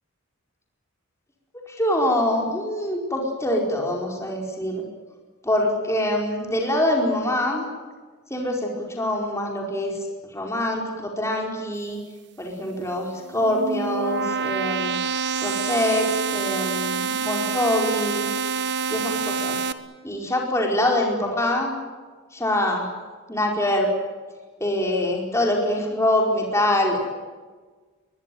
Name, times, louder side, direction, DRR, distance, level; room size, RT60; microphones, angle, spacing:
voice 1, 1.7-4.8 5.4-7.6 8.3-9.9 10.3-12.0 12.4-15.0 15.4-18.3 18.9-19.6 20.0-21.7 22.3-22.9 23.3-23.9 24.6-27.0, left 1 dB, 15° left, 0 dB, 4.7 m, -24 dB
sound 1, 13.2-19.7, right 6 dB, 50° right, 1.4 m, -27 dB
23.0 x 22.0 x 9.3 m, 1.4 s
head